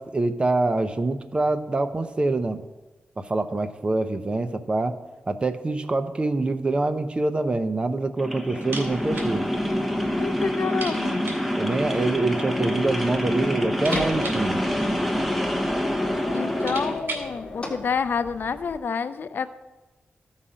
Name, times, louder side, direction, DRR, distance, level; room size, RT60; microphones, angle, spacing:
voice 1, 0.0-2.6 3.2-5.0 5.3-9.5 11.6-14.6, right 2 dB, 30° right, 9 dB, 0.6 m, -25 dB
sound 1, 8.2-17.0, equal, ahead, 0.9 m, -26 dB
sound 2, 8.6-9.4 9.6-9.7 10.1-10.2 10.7-11.5 12.5-13.1 13.4-15.4 16.1-16.2 16.4-17.4, right 3 dB, 80° right, 2.2 m, -37 dB
voice 2, 10.2-11.2 16.3-19.5, left 6 dB, 65° left, 12 dB, 0.4 m, -28 dB
sound 3, 12.8-18.8, left 2 dB, 25° left, 1.4 m, -36 dB
14.5 x 5.7 x 5.0 m, 1.1 s
wide cardioid pair, 145°, 4 cm